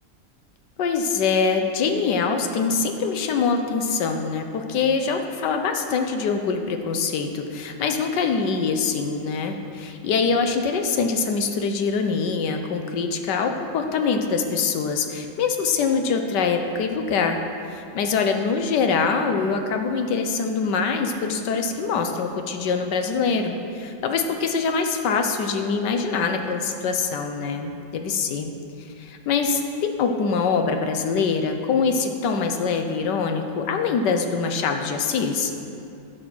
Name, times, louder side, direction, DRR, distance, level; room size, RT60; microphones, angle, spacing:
voice 1, 0.8-17.4 17.7-28.5 29.0-35.5, left 5 dB, 85° left, 5 dB, 1.5 m, -24 dB
11.5 x 6.6 x 6.1 m, 2.6 s
omnidirectional pair, 1.8 m